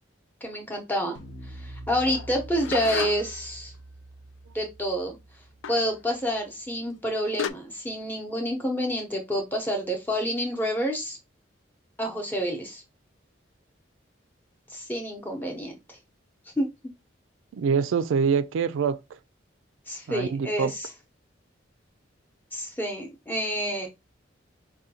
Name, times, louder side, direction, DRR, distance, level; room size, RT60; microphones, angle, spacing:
voice 1, 0.4-1.2 1.5-3.7 4.5-5.2 5.7-11.2 12.0-12.8 14.7-16.0 16.6-16.7 19.9-20.9 22.5-23.9, equal, 10° left, 0.7 m, -28 dB
sound 1, 1.1-6.5, right 1 dB, 70° left, 0.7 m, -45 dB
sound 2, 2.1-3.5 5.6-5.9 6.9-7.0 7.4-7.5, left 8 dB, 85° left, 0.3 m, -33 dB
voice 2, 17.5-19.0 20.1-20.7, right 6 dB, 90° right, 0.3 m, -25 dB
4.8 x 2.2 x 2.8 m
head